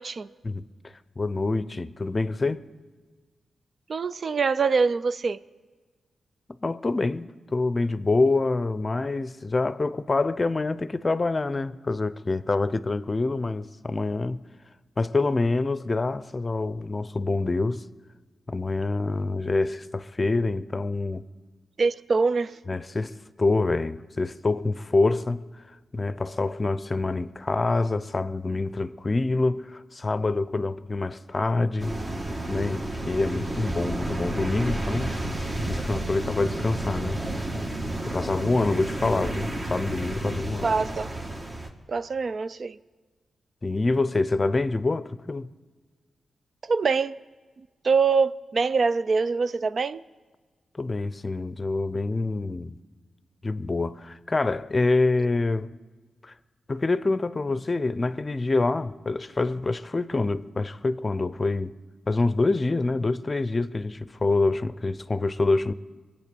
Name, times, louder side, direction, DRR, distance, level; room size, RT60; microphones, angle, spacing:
voice 1, 0.4-2.6 6.6-14.4 15.0-17.8 18.5-21.2 22.7-25.4 25.9-31.9 32.5-35.2 35.7-37.2 38.1-40.7 43.6-45.5 50.7-52.8 53.4-55.7 56.2-56.3 56.7-61.7 62.1-65.7, left 3 dB, 35° left, 0.6 m, -26 dB
voice 2, 3.9-5.4 21.8-22.6 40.6-41.1 41.9-42.8 46.6-47.1 47.8-50.0, right 4 dB, 55° right, 0.4 m, -24 dB
sound 1, 31.8-41.7, right 1 dB, 35° right, 1.7 m, -31 dB
22.5 x 8.7 x 6.9 m
cardioid pair, 65°, 0 cm